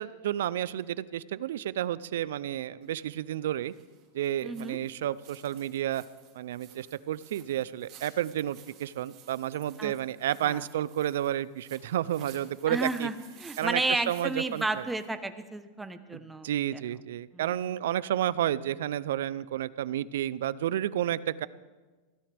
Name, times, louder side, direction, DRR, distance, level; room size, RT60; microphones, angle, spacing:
voice 1, 0.0-3.7 4.1-6.0 6.3-13.1 13.6-14.9 16.1-21.5, right 11 dB, 85° right, 18 dB, 0.6 m, -31 dB
sound 1, 2.8-15.1, right 9 dB, 40° right, 3.0 m, -56 dB
voice 2, 4.4-4.8 9.8-9.9 10.4-10.6 12.7-16.9 17.3-17.7, right 2 dB, 5° right, 9 dB, 1.0 m, -32 dB
24.0 x 16.5 x 3.5 m, 1.3 s
supercardioid pair, 150°, 0 cm